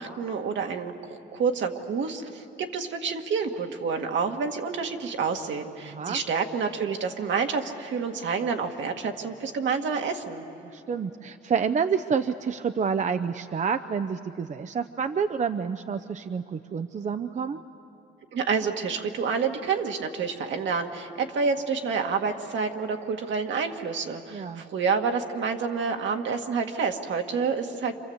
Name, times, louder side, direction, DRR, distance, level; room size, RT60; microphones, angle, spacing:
voice 1, 0.0-10.4 18.3-28.0, right 5 dB, 70° right, 4 dB, 1.9 m, -28 dB
voice 2, 5.9-6.2 10.6-17.6 24.3-24.6, right 6 dB, 35° right, 9 dB, 0.7 m, -28 dB
27.5 x 27.0 x 8.0 m, 2.9 s
cardioid pair, 90°, 20 cm